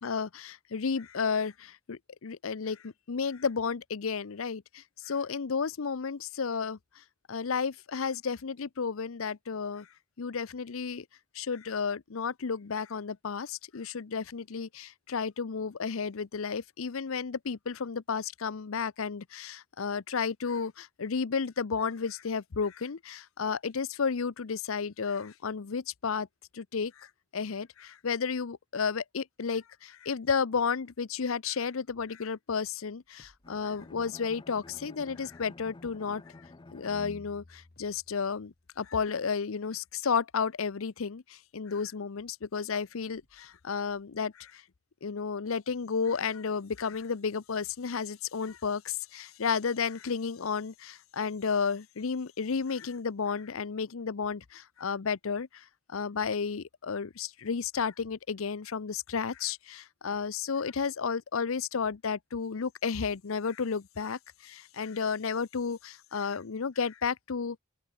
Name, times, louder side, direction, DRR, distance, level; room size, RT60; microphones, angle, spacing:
voice 1, 0.0-6.8 7.3-9.9 10.2-11.0 11.3-26.3 26.5-27.1 27.3-36.2 36.7-44.6 45.0-55.6 55.9-67.6, left 5 dB, 70° left, 0.6 m, -32 dB
sound 1, 33.0-35.3 35.6-35.9 37.2-39.4 42.7-44.6 44.9-45.0, left 1 dB, 50° left, 5.5 m, -70 dB
Bowed string instrument, 33.4-38.5, left 2 dB, 20° left, 0.5 m, -50 dB
open air
head